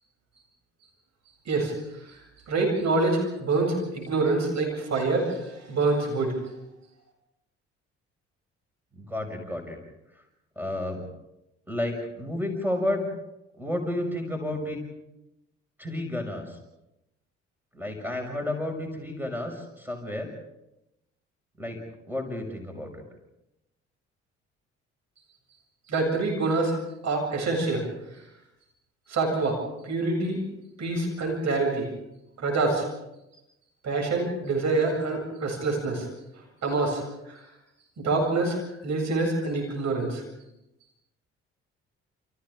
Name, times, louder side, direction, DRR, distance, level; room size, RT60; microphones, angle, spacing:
voice 1, 2.5-6.4 25.9-26.8 27.0-27.8 29.1-29.6 29.8-30.4 30.8-31.9 32.4-32.9 33.8-36.0 36.6-37.0 37.3-37.4 38.0-40.2, right 3 dB, 50° right, 1 dB, 8.0 m, -26 dB
voice 2, 9.0-9.8 10.6-11.1 11.7-13.1 13.6-14.8 15.8-16.6 17.7-20.3 21.6-21.8 22.1-23.0, left 1 dB, 5° right, 4 dB, 6.3 m, -31 dB
30.0 x 29.0 x 3.8 m, 0.90 s
figure-of-eight pair, 45°, 35 cm